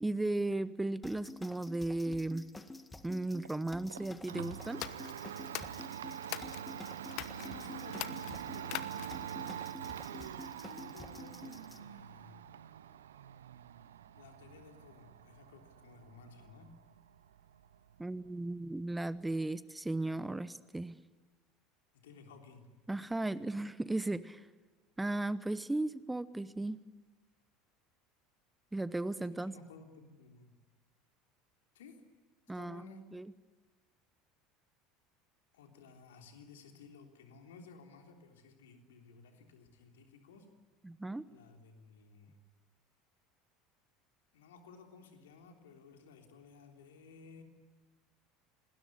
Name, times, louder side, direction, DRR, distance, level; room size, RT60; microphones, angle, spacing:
voice 1, 0.0-2.4 3.0-4.8 18.0-21.0 22.9-24.5 25.0-26.8 28.7-29.5 32.5-32.8 33.1-33.3 40.8-41.3, right 2 dB, 10° right, 17 dB, 0.9 m, -36 dB
sound 1, 1.0-11.8, left 2 dB, 15° left, 1.9 m, -50 dB
Domestic sounds home sounds, 3.4-19.3, right 9 dB, 75° right, 0.8 m, -45 dB
sound 2, 4.7-6.7 7.1-7.5 7.9-9.3, left 17 dB, 55° left, 1.1 m, -43 dB
voice 2, 7.3-9.6 10.3-12.4 14.2-16.7 21.9-22.7 29.3-30.6 31.7-32.0 32.5-33.1 35.5-40.5 41.3-42.4 44.3-47.4, left 4 dB, 70° left, 4 dB, 3.4 m, -56 dB
27.0 x 20.0 x 9.8 m, 1.3 s
figure-of-eight pair, 70°, 0 cm